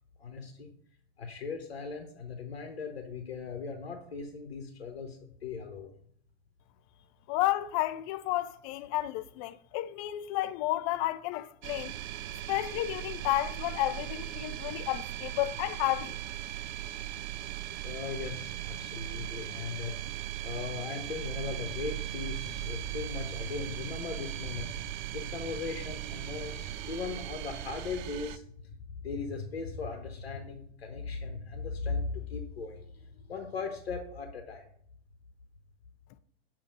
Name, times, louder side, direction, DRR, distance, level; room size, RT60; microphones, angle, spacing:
voice 1, 0.2-0.7 1.2-5.9 17.6-19.9 20.4-24.7 25.1-26.6 26.9-34.7, left 4 dB, 75° left, 0.9 m, -38 dB
voice 2, 7.3-12.0 12.5-16.2, left 15 dB, 35° left, 0.4 m, -31 dB
sound 1, 11.6-28.4, right 13 dB, 50° right, 0.4 m, -38 dB
6.7 x 2.8 x 5.3 m
figure-of-eight pair, 90°, 31 cm